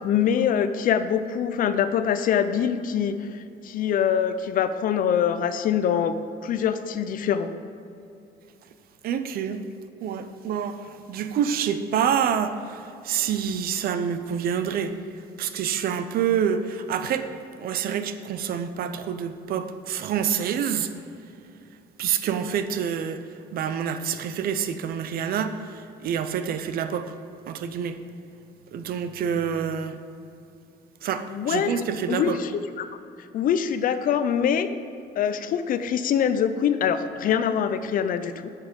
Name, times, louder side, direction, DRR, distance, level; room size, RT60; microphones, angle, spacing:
voice 1, 0.0-6.2 6.4-7.5 31.3-32.5 32.8-32.9 33.3-34.7 35.2-38.5, left 8 dB, 55° left, 11 dB, 0.5 m, -24 dB
voice 2, 9.0-9.6 10.0-10.8 11.1-14.9 15.4-17.3 17.6-20.9 22.0-23.2 23.5-27.1 27.5-28.0 28.7-29.9 31.0-32.4, right 8 dB, 60° right, 10 dB, 0.6 m, -27 dB
8.1 x 5.8 x 5.3 m, 2.7 s
cardioid pair, 110°, 17 cm